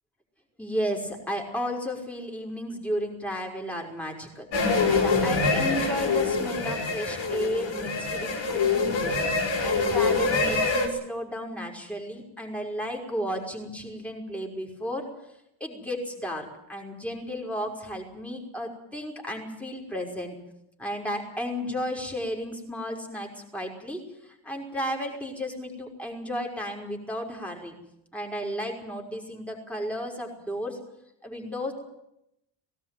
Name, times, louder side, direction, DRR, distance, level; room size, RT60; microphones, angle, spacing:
voice 1, 0.6-4.5 4.9-9.1 9.6-15.1 15.6-20.4 20.8-27.8 28.1-30.8 31.2-31.7, equal, 5° left, 0 dB, 5.6 m, -33 dB
sound 1, 4.5-10.9, left 4 dB, 60° left, 6.2 m, -25 dB
20.0 x 18.0 x 9.3 m, 0.80 s
cardioid pair, 135°, 49 cm